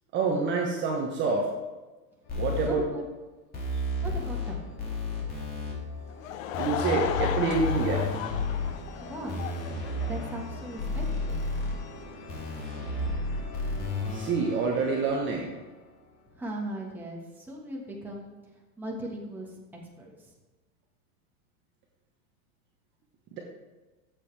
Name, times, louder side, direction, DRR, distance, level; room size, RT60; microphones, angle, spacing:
voice 1, 0.1-1.5 2.4-2.8 6.6-8.0 14.1-15.5, right 4 dB, 25° right, -1 dB, 1.2 m, -27 dB
sound 1, 2.2-3.5 4.1-16.7, left 1 dB, 50° left, 3.4 m, -46 dB
sound 2, 2.3-2.7 3.5-4.5 4.8-5.7 6.5-8.7 9.3-10.4 10.8-11.7 12.3-14.3, left 2 dB, 20° left, 2.3 m, -31 dB
voice 2, 2.6-3.0 4.0-4.7 9.0-9.5 10.1-11.4 16.3-18.3 18.8-19.6 20.0-20.3, right 1 dB, 5° right, -3 dB, 1.5 m, -38 dB
Laughter / Crowd, 6.1-10.6, left 11 dB, 65° left, 0.8 m, -35 dB
13.5 x 7.5 x 3.4 m, 1.2 s
supercardioid pair, 155°, 43 cm